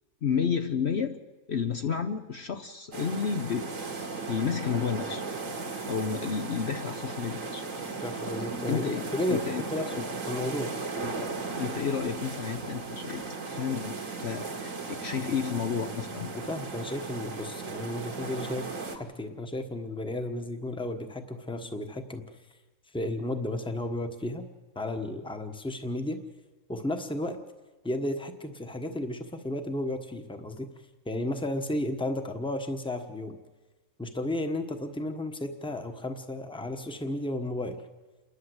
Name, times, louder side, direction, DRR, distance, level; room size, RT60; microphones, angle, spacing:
voice 1, 0.2-1.2 1.5-3.7 4.3-5.2 5.9-7.6 8.7-9.6 9.9-10.0 11.0-11.1 11.6-14.0 14.2-16.3, left 6 dB, 55° left, 6 dB, 1.0 m, -31 dB
sound 1, 2.9-19.0, right 4 dB, 65° right, 2.2 m, -36 dB
voice 2, 8.0-8.9 9.1-9.4 9.7-10.7 16.3-18.6 18.9-22.4 22.9-24.5 24.7-26.2 26.7-27.4 27.8-30.7 31.0-33.4 34.0-37.8, left 1 dB, 5° left, 6 dB, 1.1 m, -33 dB
28.5 x 11.5 x 7.9 m, 1.2 s
omnidirectional pair, 1.5 m